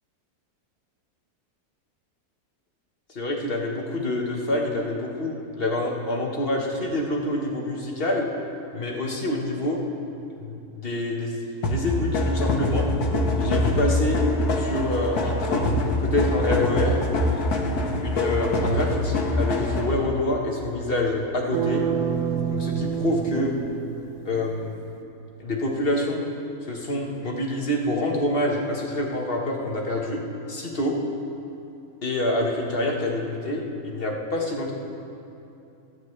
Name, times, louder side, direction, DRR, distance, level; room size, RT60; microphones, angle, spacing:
voice 1, 3.1-8.3 8.7-9.8 10.4-11.4 11.6-12.8 13.4-14.2 14.5-17.0 18.0-21.8 22.5-23.5 24.2-24.7 25.4-26.2 26.7-30.2 30.5-30.9 32.0-34.7, left 1 dB, 40° left, -1 dB, 1.5 m, -26 dB
sound 1, 11.6-20.1, left 1 dB, 85° left, 1.6 m, -24 dB
sound 2, 21.5-24.6, right 8 dB, 60° right, 1.0 m, -28 dB
27.5 x 9.5 x 3.3 m, 2.8 s
omnidirectional pair, 1.6 m